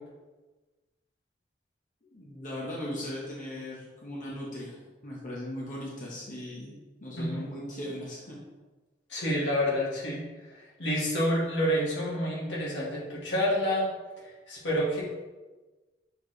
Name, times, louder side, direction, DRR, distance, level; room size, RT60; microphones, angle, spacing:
voice 1, 2.1-8.4, left 1 dB, 45° left, -4 dB, 1.1 m, -38 dB
voice 2, 9.1-10.2 10.5-13.9 14.2-15.0, equal, 85° left, -5 dB, 2.0 m, -28 dB
6.9 x 4.3 x 3.3 m, 1.2 s
head